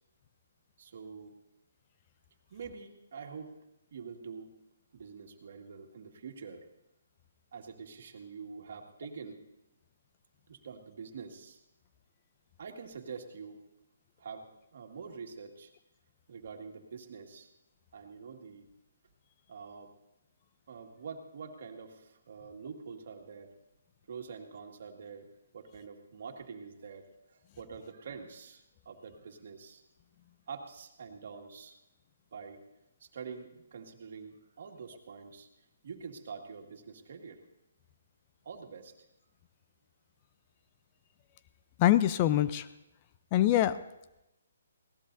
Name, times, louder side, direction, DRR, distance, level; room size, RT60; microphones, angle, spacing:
voice 1, 0.8-1.3 2.5-3.5 3.9-4.5 4.9-6.7 7.5-9.4 10.5-11.6 12.6-13.6 14.2-15.7 16.3-17.5 17.9-18.7 19.5-19.9 20.7-23.5 24.1-25.3 25.5-29.8 30.5-31.8 32.3-32.6 33.0-35.5 35.8-37.4 38.4-38.9, right 5 dB, 60° right, 3 dB, 2.0 m, -46 dB
voice 2, 41.8-42.7 43.3-43.8, left 12 dB, 30° left, 13 dB, 0.5 m, -24 dB
21.5 x 17.5 x 2.7 m, 0.91 s
hypercardioid pair, 145°, 0 cm